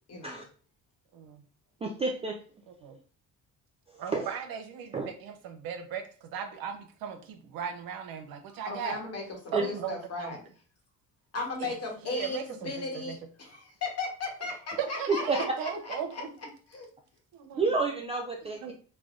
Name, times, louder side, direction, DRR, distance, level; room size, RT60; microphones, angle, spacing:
voice 1, 0.1-0.4 8.5-10.4 11.3-16.2 16.7-16.9, left 3 dB, 45° left, 1 dB, 1.0 m, -36 dB
voice 2, 1.1-1.4 2.8-3.0 4.0-9.0 9.5-10.4 11.6-11.8 12.0-13.2 14.8-16.3 17.3-17.7 18.4-18.7, right 7 dB, 80° right, 6 dB, 0.6 m, -37 dB
voice 3, 1.8-2.4 4.1-4.3 4.9-5.1 9.5-9.6 15.1-15.4 17.6-18.7, right 3 dB, 20° right, 1 dB, 0.3 m, -29 dB
3.3 x 2.1 x 2.4 m, 0.41 s
cardioid pair, 95°, 35 cm